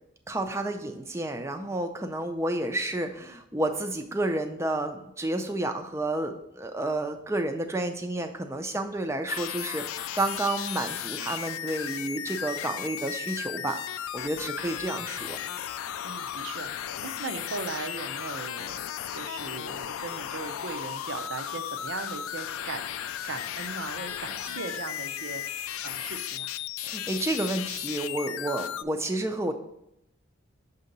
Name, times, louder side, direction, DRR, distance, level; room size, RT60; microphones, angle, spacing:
voice 1, 0.3-15.4 26.8-29.5, right 1 dB, 15° right, 5 dB, 0.4 m, -30 dB
sound 1, 9.3-28.8, left 10 dB, 85° left, 0.3 m, -35 dB
voice 2, 16.0-18.8 19.1-22.9 23.2-26.6, right 4 dB, 65° right, 7 dB, 0.6 m, -38 dB
6.8 x 2.8 x 5.2 m, 0.82 s
head